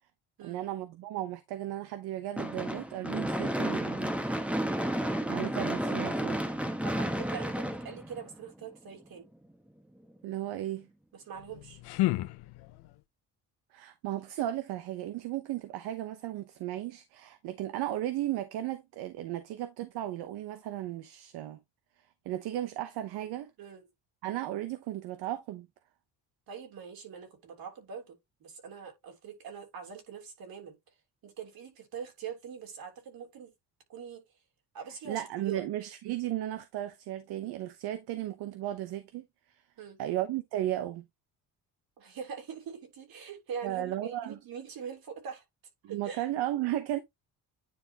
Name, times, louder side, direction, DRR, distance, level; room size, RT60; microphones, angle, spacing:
voice 1, 0.4-4.3 5.3-6.4 10.2-10.9 13.7-21.6 22.3-23.5 24.2-25.7 35.0-39.2 40.0-41.0 43.6-44.3 45.8-47.0, right 13 dB, 85° right, 0.9 m, -35 dB
Gunshot gunfire / Fireworks, 2.4-8.6, right 1 dB, 5° right, 1.1 m, -32 dB
voice 2, 6.8-9.3 11.1-11.8 23.6-23.8 26.5-30.9 31.2-33.5 33.9-34.2 34.7-35.6 39.8-40.0 42.0-45.4 45.9-46.3, right 7 dB, 65° right, 3.3 m, -43 dB
sound 1, 11.3-13.0, left 18 dB, 80° left, 0.6 m, -32 dB
9.7 x 3.9 x 2.8 m
cardioid pair, 95°, 38 cm